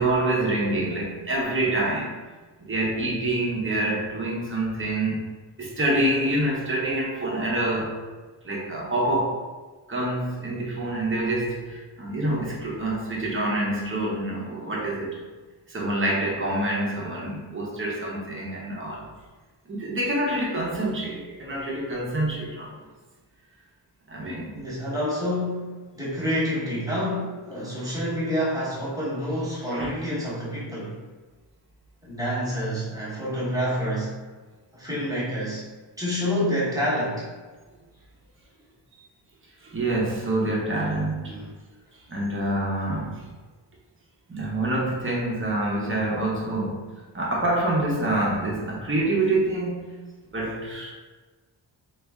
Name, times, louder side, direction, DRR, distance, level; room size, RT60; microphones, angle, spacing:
voice 1, 0.0-2.2 2.6-5.3 5.6-8.0 8.4-9.4 9.9-15.2 15.7-19.1 19.7-22.7 24.1-24.6 29.7-29.9 39.0-39.1 39.6-41.4 42.1-43.3 44.3-49.9 50.3-50.9, right 1 dB, 30° right, -4 dB, 0.7 m, -26 dB
voice 2, 24.5-31.0 32.0-34.2 34.7-35.7 36.0-37.3 41.3-41.6, equal, 10° right, -9 dB, 1.1 m, -28 dB
3.2 x 2.3 x 3.4 m, 1.3 s
wide cardioid pair, 170°, 43 cm